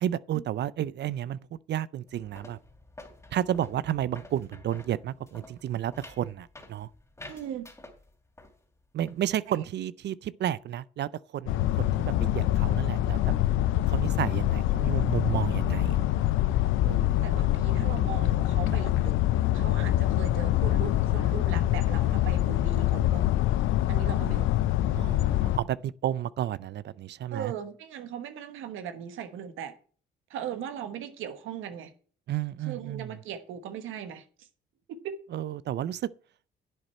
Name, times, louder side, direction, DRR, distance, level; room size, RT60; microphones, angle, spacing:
voice 1, 0.0-2.6 3.3-6.9 8.9-13.2 13.9-16.0 16.8-17.2 25.0-27.5 32.3-33.1 35.3-36.1, right 11 dB, 60° right, 0.5 m, -32 dB
sound 1, 2.1-8.6 8.8-9.3, left 2 dB, 15° left, 2.7 m, -50 dB
voice 2, 7.3-7.7 9.5-9.6 17.2-19.2 19.5-23.3 23.9-24.6 27.3-29.7 30.3-31.9 32.6-34.5 34.9-35.1, right 8 dB, 85° right, 1.2 m, -38 dB
sound 2, 11.5-25.6, left 14 dB, 90° left, 0.6 m, -25 dB
11.0 x 7.9 x 4.3 m
cardioid pair, 90°, 20 cm